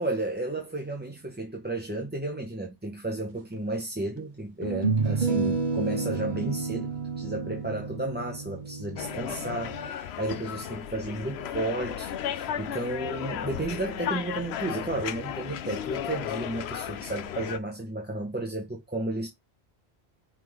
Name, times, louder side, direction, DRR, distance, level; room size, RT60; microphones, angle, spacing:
voice 1, 0.0-19.3, right 2 dB, 10° right, 0.9 m, -33 dB
sound 1, 3.5-3.6 4.6-9.9, right 4 dB, 50° right, 0.9 m, -30 dB
sound 2, 9.0-17.6, left 9 dB, 80° left, 0.9 m, -34 dB
5.8 x 3.7 x 4.6 m
omnidirectional pair, 1.1 m